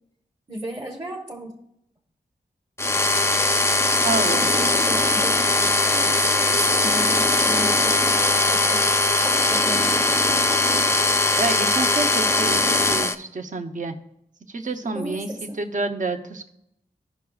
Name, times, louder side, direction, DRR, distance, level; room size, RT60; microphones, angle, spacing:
voice 1, 0.5-1.5 4.4-5.5 5.8-8.9 9.2-9.9 10.3-10.5 14.9-15.6, right 1 dB, 25° right, -2 dB, 1.1 m, -34 dB
sound 1, 2.8-13.1, left 2 dB, 15° left, 0.5 m, -20 dB
voice 2, 4.0-4.5 5.5-5.7 11.3-13.9 14.5-16.5, right 3 dB, 50° right, 6 dB, 0.8 m, -29 dB
15.0 x 5.8 x 2.3 m, 0.78 s
wide cardioid pair, 120°, 17 cm